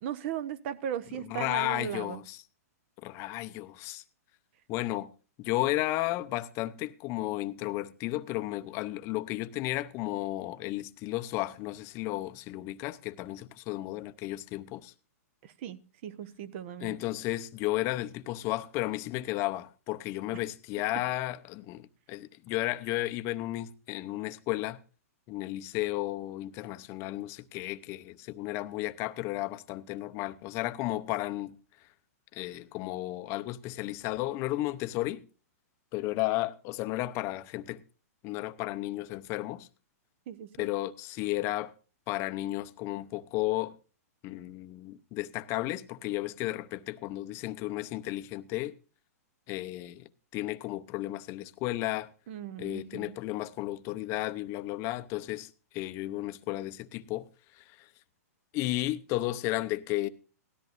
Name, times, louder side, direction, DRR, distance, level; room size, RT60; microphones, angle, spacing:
voice 1, 0.0-2.2 15.4-17.0 20.3-20.4 40.3-40.7 52.3-53.2, right 9 dB, 45° right, 1.0 m, -37 dB
voice 2, 1.3-2.4 3.0-4.0 4.7-5.1 5.4-14.9 16.8-24.8 25.3-31.6 32.3-35.2 35.9-37.8 38.2-39.7 40.6-41.7 42.1-43.7 44.2-48.7 49.5-52.1 52.6-57.3 57.6-57.9 58.5-60.1, left 17 dB, 30° left, 0.7 m, -33 dB
18.0 x 13.5 x 2.6 m
hypercardioid pair, 145°, 9 cm